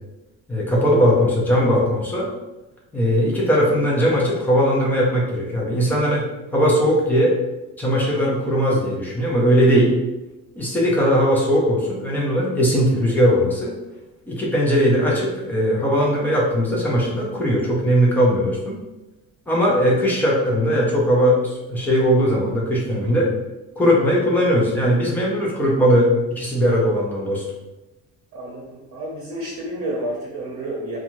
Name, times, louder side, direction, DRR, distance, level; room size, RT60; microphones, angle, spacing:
voice 1, 0.5-2.3 2.9-6.2 6.5-7.4 7.8-9.9 10.6-13.7 14.3-18.8 19.5-23.3 23.8-27.4, equal, 5° left, -4 dB, 0.4 m, -19 dB
voice 2, 28.3-31.0, right 1 dB, 75° right, -4 dB, 0.7 m, -30 dB
2.6 x 2.3 x 2.9 m, 1.0 s
cardioid pair, 175°, 31 cm